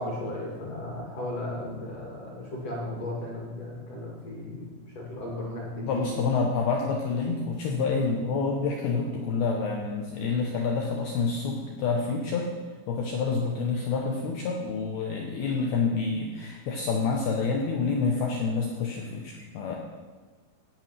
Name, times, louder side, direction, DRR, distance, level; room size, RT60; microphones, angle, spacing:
voice 1, 0.0-4.7 4.9-6.1, left 1 dB, 50° left, -3 dB, 2.0 m, -35 dB
voice 2, 5.8-12.5 12.9-19.8, left 4 dB, 85° left, 0 dB, 2.2 m, -28 dB
11.0 x 9.0 x 5.7 m, 1.3 s
omnidirectional pair, 5.8 m